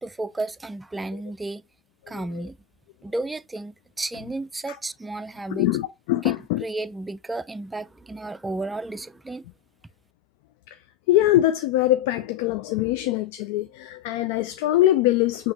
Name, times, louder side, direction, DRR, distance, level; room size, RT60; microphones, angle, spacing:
voice 1, 0.0-1.6 2.1-2.6 3.0-5.7 6.2-6.4 6.6-9.4, right 2 dB, 20° right, 0.4 m, -32 dB
voice 2, 2.0-2.4 4.7-4.8 5.5-6.6 10.7-15.5, left 14 dB, 85° left, 0.3 m, -23 dB
5.8 x 2.8 x 3.1 m
hypercardioid pair, 65°, 0 cm